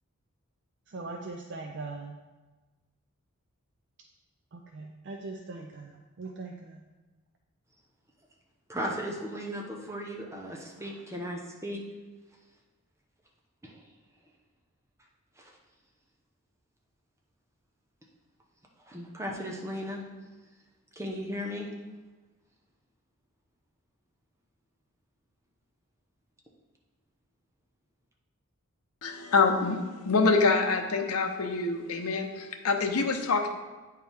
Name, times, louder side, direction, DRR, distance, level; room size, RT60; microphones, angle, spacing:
voice 1, 0.9-2.1 4.5-6.8, right 3 dB, 55° right, 2 dB, 0.5 m, -41 dB
voice 2, 8.7-11.8 13.6-13.8 15.4-15.5 18.9-20.0 21.0-21.7, equal, 15° right, -1 dB, 0.9 m, -36 dB
voice 3, 29.0-33.5, left 4 dB, 85° left, 5 dB, 0.7 m, -26 dB
8.9 x 4.5 x 3.5 m, 1.2 s
head